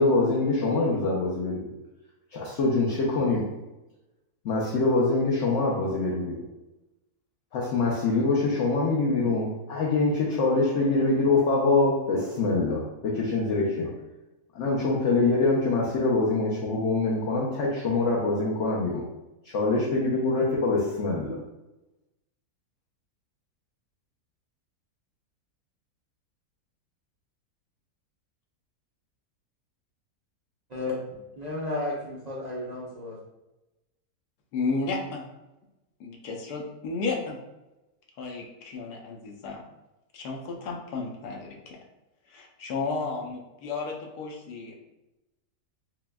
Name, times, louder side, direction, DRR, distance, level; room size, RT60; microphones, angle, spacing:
voice 1, 0.0-1.6 2.3-3.5 4.4-6.3 7.5-13.9 14.5-19.0 19.4-21.4, left 3 dB, 60° left, -4 dB, 0.8 m, -24 dB
voice 2, 31.4-33.2, left 2 dB, 80° right, -6 dB, 0.3 m, -33 dB
voice 3, 34.5-35.2 36.0-37.4 38.2-39.6 40.1-41.8 42.3-44.8, left 4 dB, 80° left, 0 dB, 1.2 m, -33 dB
5.8 x 2.2 x 2.2 m, 1.0 s
omnidirectional pair, 1.7 m